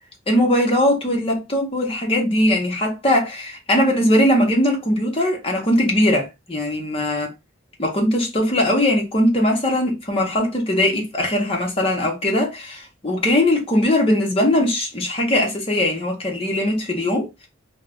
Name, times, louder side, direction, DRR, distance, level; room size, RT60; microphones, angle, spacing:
voice 1, 0.3-7.3 7.8-17.3, left 1 dB, 30° left, 0.8 m, -20 dB
2.3 x 2.1 x 3.6 m
head